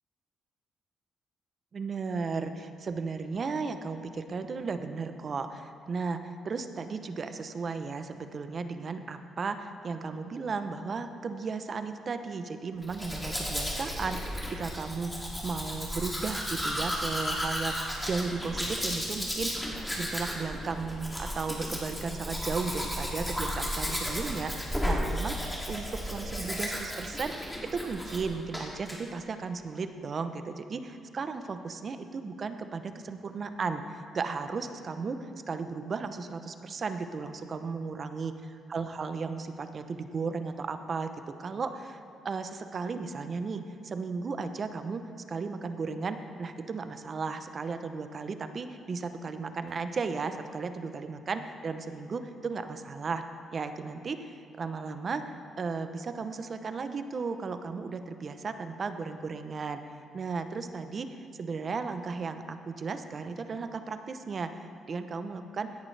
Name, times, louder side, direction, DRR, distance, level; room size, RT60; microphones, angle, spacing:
voice 1, 1.7-17.8 18.0-27.3 27.7-35.2 35.5-38.3 38.7-53.2 53.5-55.2 55.6-59.8 60.1-61.1 61.4-65.7, right 4 dB, 45° right, 9 dB, 0.7 m, -35 dB
Domestic sounds home sounds, 12.8-28.3 28.5-29.0, equal, 5° left, 2.5 m, -34 dB
16.5 x 10.5 x 3.3 m, 2.4 s
cardioid pair, 90°, 0 cm